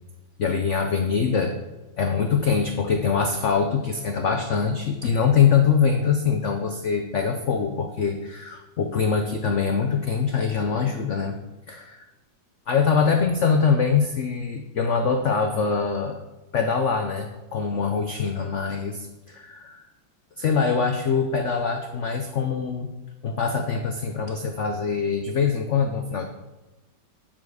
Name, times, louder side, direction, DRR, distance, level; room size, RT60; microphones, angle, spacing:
voice 1, 0.4-1.5 2.0-11.4 11.7-11.9 12.7-16.2 16.5-19.8 20.4-22.9 23.2-26.3, left 6 dB, 90° left, 5 dB, 0.6 m, -23 dB
8.9 x 7.4 x 4.7 m, 1.1 s
omnidirectional pair, 2.2 m